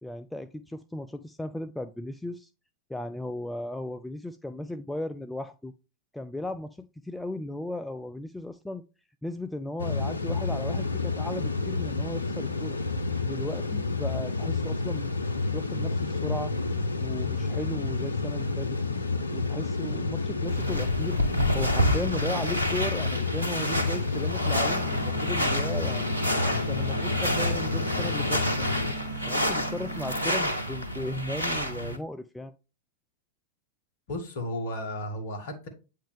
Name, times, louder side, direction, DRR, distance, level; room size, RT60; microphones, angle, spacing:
voice 1, 0.0-2.5 2.9-5.7 6.1-8.8 9.2-12.8 13.2-15.1 15.4-16.5 17.0-18.8 19.3-21.2 21.5-26.1 26.7-28.7 29.2-32.5, left 1 dB, 5° left, 0.4 m, -36 dB
sound 1, 9.8-28.9, left 3 dB, 80° left, 0.6 m, -30 dB
sound 2, 20.5-32.0, equal, 85° right, 1.0 m, -29 dB
sound 3, 24.5-30.5, right 3 dB, 20° right, 1.8 m, -41 dB
voice 2, 34.1-35.7, left 1 dB, 50° left, 1.8 m, -34 dB
8.5 x 3.7 x 3.4 m
figure-of-eight pair, 90°, 0 cm